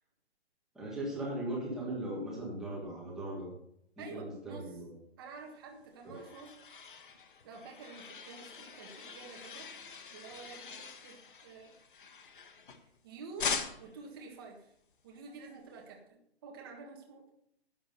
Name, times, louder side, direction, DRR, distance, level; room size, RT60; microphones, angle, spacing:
voice 1, 0.7-3.5 4.0-4.9 6.0-6.2, right 1 dB, ahead, -5 dB, 1.7 m, -38 dB
voice 2, 4.0-4.7 5.2-6.5 7.4-9.7 10.1-11.7 13.0-13.5 13.8-14.7 15.0-17.3, right 4 dB, 20° right, 1 dB, 1.6 m, -49 dB
sound 1, 5.7-13.0 13.4-14.0, left 6 dB, 50° left, 1.5 m, -42 dB
11.5 x 8.9 x 5.5 m, 0.73 s
hypercardioid pair, 175°, 33 cm